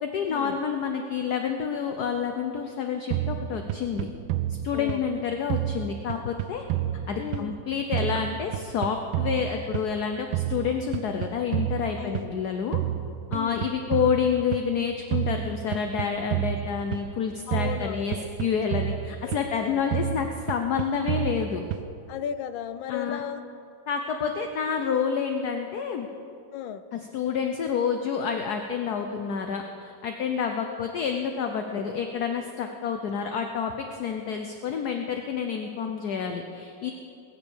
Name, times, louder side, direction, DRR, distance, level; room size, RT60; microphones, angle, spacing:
voice 1, 0.0-4.1 4.6-6.6 7.1-12.8 13.3-21.6 22.9-23.2 23.9-26.1 26.9-36.9, left 6 dB, 60° left, 5 dB, 1.2 m, -28 dB
sound 1, 3.1-5.2 5.5-7.7 7.9-10.0 10.3-12.4 12.7-14.7 15.1-17.2 17.5-19.6 19.9-22.0, right 12 dB, 90° right, 1.5 m, -30 dB
voice 2, 7.2-7.5 12.0-12.4 13.3-13.7 17.5-19.8 22.1-23.5 26.5-26.8, left 9 dB, 90° left, 12 dB, 1.5 m, -36 dB
21.0 x 7.2 x 7.1 m, 2.5 s
omnidirectional pair, 2.1 m